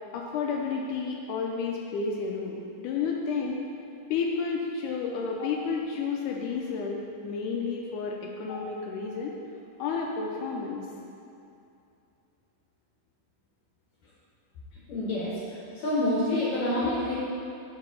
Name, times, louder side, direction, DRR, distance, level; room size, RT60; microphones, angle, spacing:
voice 1, 0.1-3.6 4.1-9.4 9.8-10.9, left 5 dB, 90° left, -1 dB, 1.8 m, -31 dB
voice 2, 14.9-15.4 15.8-17.2, left 1 dB, 65° left, -7 dB, 1.9 m, -27 dB
5.0 x 4.7 x 6.1 m, 2.6 s
omnidirectional pair, 4.2 m